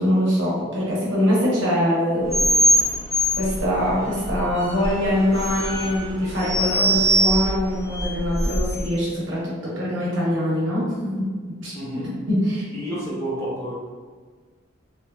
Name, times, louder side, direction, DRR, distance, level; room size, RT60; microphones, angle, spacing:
voice 1, 0.0-2.5 3.4-10.8 11.2-11.3 11.6-11.7 12.3-12.7, equal, 65° right, -7 dB, 1.0 m, -23 dB
sound 1, 2.3-8.9, right 1 dB, 30° left, 1.0 m, -23 dB
voice 2, 11.7-12.2 12.7-13.7, right 1 dB, 15° left, -7 dB, 0.5 m, -30 dB
2.9 x 2.1 x 2.3 m, 1.5 s
head